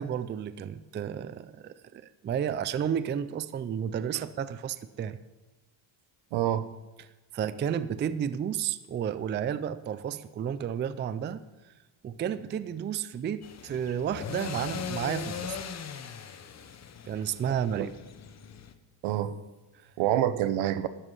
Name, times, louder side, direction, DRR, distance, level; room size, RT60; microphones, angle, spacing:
voice 1, 0.0-5.2 7.3-11.4 12.0-15.6 17.1-17.9 19.8-19.9, right 8 dB, 25° right, 14 dB, 0.3 m, -32 dB
voice 2, 6.3-6.7 17.5-17.9 19.0-19.4 20.0-20.9, right 12 dB, 80° right, 14 dB, 0.9 m, -27 dB
sound 1, 13.4-18.7, left 7 dB, 35° left, 0.9 m, -39 dB
12.5 x 11.0 x 5.5 m, 1.1 s
cardioid pair, 135°, 48 cm